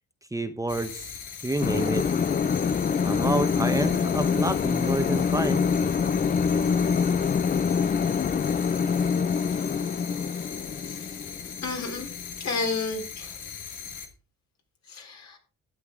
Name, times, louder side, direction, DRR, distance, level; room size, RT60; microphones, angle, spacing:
voice 1, 0.3-2.0 3.0-5.7, right 2 dB, 10° right, 8 dB, 0.9 m, -29 dB
sound 1, 0.7-14.1, left 7 dB, 85° left, 2.3 m, -40 dB
sound 2, 1.6-12.7, left 6 dB, 30° left, 0.5 m, -25 dB
voice 2, 10.8-11.2 11.6-12.1 12.4-13.4 14.9-15.4, left 4 dB, 60° left, 2 dB, 4.0 m, -32 dB
12.0 x 9.4 x 3.7 m, 0.40 s
cardioid pair, 90°, 30 cm